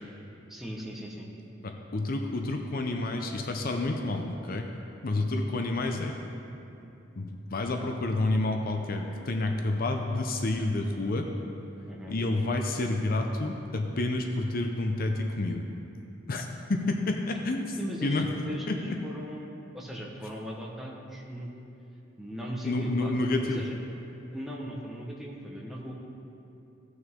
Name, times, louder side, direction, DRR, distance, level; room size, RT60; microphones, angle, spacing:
voice 1, 0.5-1.3 11.9-12.2 17.8-21.5 22.2-23.1 23.4-23.8 24.3-25.9, equal, ahead, -3 dB, 1.2 m, -38 dB
voice 2, 1.9-4.7 5.0-6.2 7.1-11.3 12.1-15.6 16.3-18.3 18.7-18.8 22.6-23.6, left 2 dB, 50° left, 3 dB, 0.6 m, -29 dB
16.0 x 6.2 x 3.7 m, 2.8 s
head